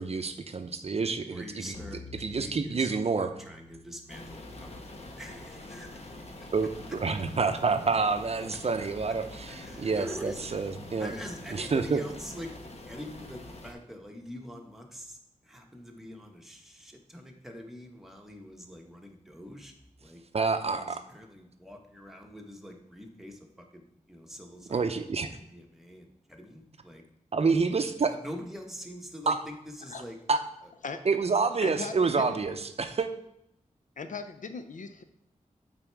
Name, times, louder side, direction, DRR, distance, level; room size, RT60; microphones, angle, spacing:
voice 1, 0.0-1.7 2.2-3.3 6.5-11.1 11.5-12.0 20.3-21.0 24.7-25.3 27.3-28.2 29.3-29.4 30.3-30.4 31.1-33.1, right 4 dB, 50° right, 8 dB, 0.6 m, -28 dB
voice 2, 1.3-6.3 9.1-9.2 9.5-10.7 11.0-19.7 20.0-20.2 20.7-25.0 25.3-27.0 27.8-30.2, equal, ahead, 1 dB, 1.1 m, -45 dB
sound 1, 1.7-7.1, left 3 dB, 35° left, 0.8 m, -52 dB
sound 2, 4.1-13.7, left 1 dB, 50° left, 1.0 m, -45 dB
voice 3, 31.6-32.4 34.0-35.0, left 4 dB, 75° left, 8 dB, 0.6 m, -38 dB
7.8 x 4.2 x 4.6 m, 0.76 s
wide cardioid pair, 85°, 13 cm